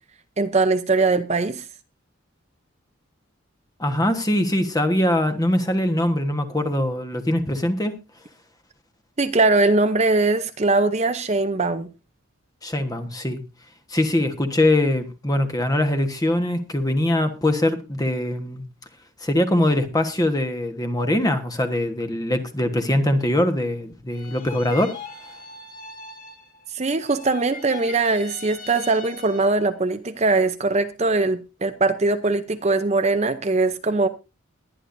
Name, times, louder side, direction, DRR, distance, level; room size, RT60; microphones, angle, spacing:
voice 1, 0.4-1.6 9.2-11.9 26.7-34.1, right 3 dB, 30° right, 0.7 m, -21 dB
voice 2, 3.8-7.9 12.6-13.4 13.9-18.6 19.2-24.9, left 1 dB, 15° left, 1.3 m, -22 dB
sound 1, 24.1-26.7 27.0-29.7, left 4 dB, 40° left, 2.8 m, -41 dB
22.0 x 10.0 x 2.7 m
head